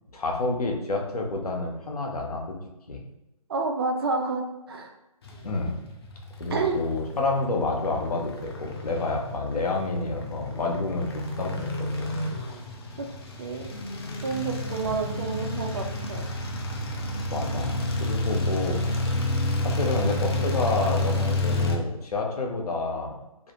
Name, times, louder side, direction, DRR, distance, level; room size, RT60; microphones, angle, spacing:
voice 1, 0.1-2.6 2.9-3.0 5.4-5.8 6.4-12.2 14.8-15.0 17.3-19.3 19.6-23.2, left 3 dB, 90° left, 1 dB, 0.7 m, -29 dB
voice 2, 3.5-4.9 6.5-6.8 13.0-13.1 13.4-13.7 14.2-16.3, right 4 dB, 45° right, 3 dB, 0.4 m, -29 dB
sound 1, 5.3-21.8, left 1 dB, 45° left, 0.4 m, -30 dB
2.4 x 2.0 x 2.9 m, 0.94 s
hypercardioid pair, 155°, 19 cm